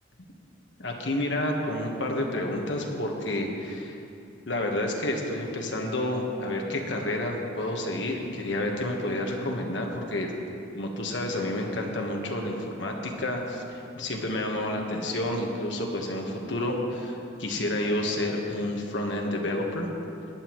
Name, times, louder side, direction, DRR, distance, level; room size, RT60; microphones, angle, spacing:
voice 1, 0.8-4.0 4.5-10.3 10.7-19.9, left 1 dB, 75° left, 1 dB, 1.3 m, -30 dB
17.5 x 10.5 x 3.1 m, 2.7 s
head